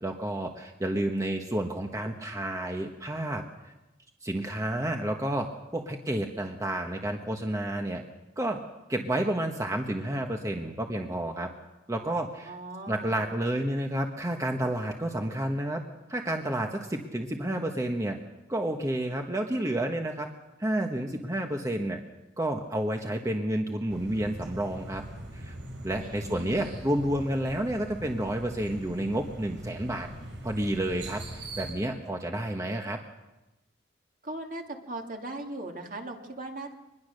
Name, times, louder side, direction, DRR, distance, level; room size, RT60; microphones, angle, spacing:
voice 1, 0.0-3.7 4.2-8.0 8.4-8.6 8.9-11.5 11.9-12.5 12.9-15.8 16.1-18.2 18.5-20.3 20.6-22.0 22.4-25.0 25.3-25.6 25.8-30.1 30.4-33.0, right 1 dB, 20° right, 3 dB, 1.3 m, -30 dB
voice 2, 12.5-13.1 26.0-26.7 34.2-36.7, right 2 dB, 50° right, 3 dB, 2.5 m, -39 dB
sound 1, 23.9-31.7, right 1 dB, 85° right, 5.3 m, -42 dB
24.0 x 21.0 x 6.6 m, 1.0 s
head